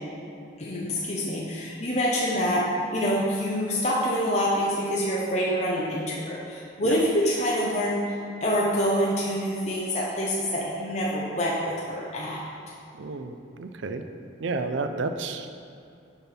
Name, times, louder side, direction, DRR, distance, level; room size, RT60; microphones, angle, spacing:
voice 1, 0.6-2.6 2.9-12.4, equal, 35° left, -5 dB, 0.8 m, -26 dB
voice 2, 13.0-13.3 13.6-14.0 14.4-15.5, right 3 dB, 65° right, 8 dB, 0.4 m, -30 dB
6.8 x 4.3 x 6.0 m, 2.6 s
head